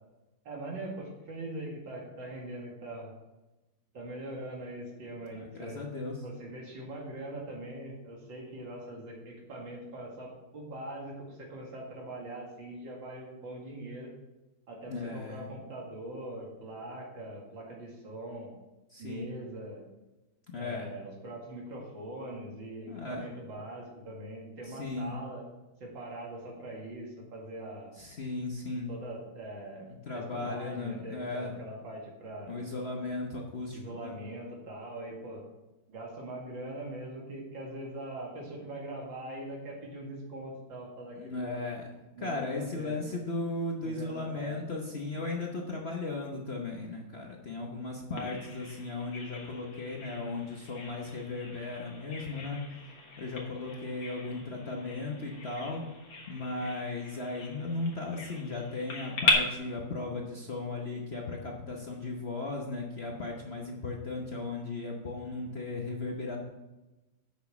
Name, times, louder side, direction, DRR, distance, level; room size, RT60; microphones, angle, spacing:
voice 1, 0.4-3.1 3.9-5.8 6.2-14.1 14.7-18.5 19.0-19.9 20.5-25.5 25.8-28.0 28.9-32.6 33.7-35.4 35.9-41.6 42.2-43.1 43.8-44.5, right 1 dB, 75° right, -1 dB, 2.8 m, -42 dB
voice 2, 5.3-6.2 14.9-15.5 18.9-19.2 20.5-20.9 22.9-23.3 24.7-25.2 28.0-29.0 30.1-31.6 32.5-34.2 41.2-41.9 42.2-52.6 53.2-55.8 56.3-66.4, left 3 dB, 45° left, -1 dB, 0.9 m, -36 dB
Bird vocalization bird call bird song, 48.2-59.3, left 3 dB, 85° left, 2.3 m, -38 dB
8.2 x 6.4 x 5.2 m, 1.1 s
omnidirectional pair, 2.1 m